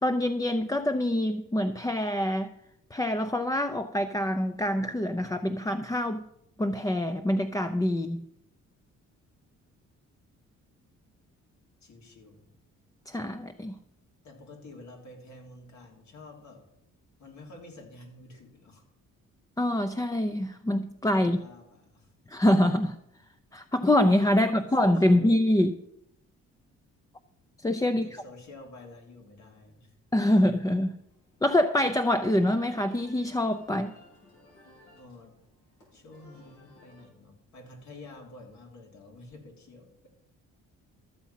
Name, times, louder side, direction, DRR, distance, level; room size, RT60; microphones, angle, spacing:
voice 1, 0.0-2.5 2.9-6.2 6.6-8.2 13.1-13.8 19.6-21.4 22.3-23.0 23.5-25.8 27.6-28.0 30.1-31.0 31.4-33.9, left 1 dB, 10° left, 8 dB, 0.6 m, -25 dB
voice 2, 11.8-12.5 14.2-16.7 17.2-18.8 21.1-22.1 24.4-25.4 27.6-29.9 34.8-35.4 35.9-40.1, left 2 dB, 70° left, 1 dB, 3.1 m, -49 dB
sound 1, 30.9-37.1, left 1 dB, 90° left, 4.7 m, -58 dB
13.5 x 7.1 x 5.7 m, 0.78 s
cardioid pair, 90°, 30 cm